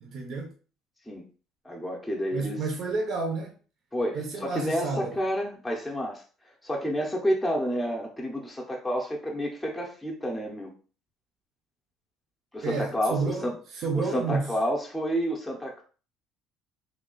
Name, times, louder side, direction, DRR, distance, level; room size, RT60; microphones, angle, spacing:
voice 1, 0.0-0.5 2.3-3.5 4.1-5.2 12.6-14.5, right 4 dB, 50° right, 0.7 m, -30 dB
voice 2, 1.6-2.6 3.9-6.2 6.6-10.7 12.5-13.5 13.9-15.8, equal, 5° left, 0.6 m, -29 dB
3.2 x 2.3 x 3.7 m
cardioid pair, 130°, 0 cm